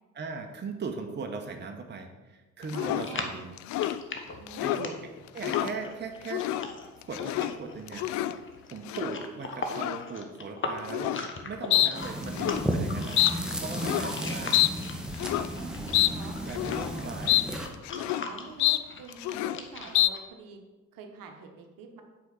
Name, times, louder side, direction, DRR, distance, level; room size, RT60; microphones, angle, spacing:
voice 1, 0.1-3.6 4.6-6.5 7.1-8.1 8.7-11.2 11.5-14.6 16.4-17.4, right 4 dB, 25° right, 4 dB, 1.1 m, -39 dB
sound 1, 2.7-3.1 3.6-4.0 4.5-4.9 5.3-5.7 6.2-6.7 7.0-7.5 7.9-8.4 8.9-9.2 9.7-10.0 10.9-11.3 11.7-11.9 12.2-12.7 13.2-13.3 13.7-14.1 14.5-14.7 15.1-15.5 15.9-16.1 16.5-16.9 17.3-17.5 17.7-18.3 18.6-18.8 19.1-19.6 19.9-20.1, left 15 dB, 45° left, 0.4 m, -27 dB
voice 2, 2.7-3.3 4.3-4.8 15.5-16.4 16.9-17.0 17.9-20.6 20.9-22.0, right 5 dB, 55° right, 4 dB, 1.2 m, -46 dB
sound 2, 3.0-15.2 15.5-20.2, left 3 dB, 30° left, 1.1 m, -40 dB
sound 3, 11.9-17.7, right 1 dB, ahead, 1.2 m, -34 dB
8.1 x 4.9 x 5.6 m, 1.2 s
figure-of-eight pair, 45°, 41 cm